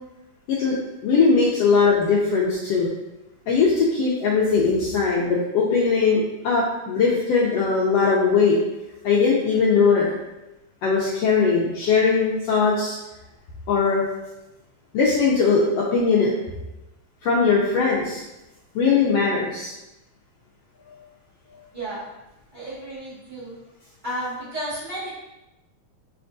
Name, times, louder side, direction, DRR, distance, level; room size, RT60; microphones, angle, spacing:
voice 1, 1.0-2.9 3.5-8.6 9.0-10.1 10.8-13.0 13.7-14.0 14.9-16.3 17.2-18.2 18.7-19.7, left 5 dB, 85° left, -4 dB, 1.4 m, -20 dB
voice 2, 21.7-22.1 22.5-23.5 24.0-25.2, right 1 dB, 70° right, -11 dB, 0.4 m, -32 dB
5.9 x 3.4 x 2.6 m, 0.98 s
omnidirectional pair, 3.5 m